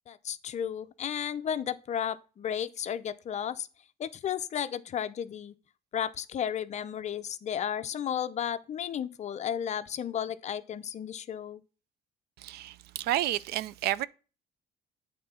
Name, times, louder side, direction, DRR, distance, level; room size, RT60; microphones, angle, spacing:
voice 1, 0.1-3.7 4.0-5.5 5.9-11.6, left 9 dB, 45° left, 0.6 m, -33 dB
voice 2, 12.4-14.1, right 14 dB, 70° right, 0.4 m, -30 dB
8.6 x 3.7 x 5.5 m
cardioid pair, 110°, 17 cm